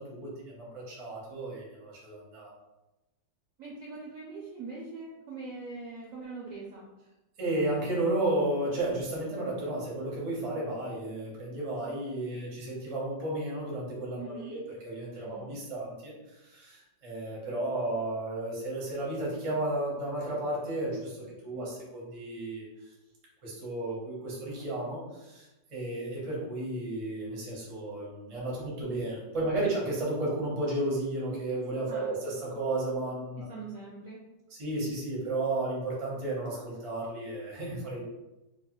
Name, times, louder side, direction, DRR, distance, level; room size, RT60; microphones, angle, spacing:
voice 1, 0.0-2.5 7.4-22.6 23.4-33.5 34.5-38.0, right 2 dB, 40° right, -4 dB, 0.4 m, -33 dB
voice 2, 3.6-6.9 14.2-14.5 15.2-15.5 21.2-21.6 31.9-32.1 33.5-34.2, right 3 dB, 70° right, -4 dB, 0.8 m, -42 dB
3.0 x 2.2 x 2.9 m, 1.0 s
omnidirectional pair, 1.9 m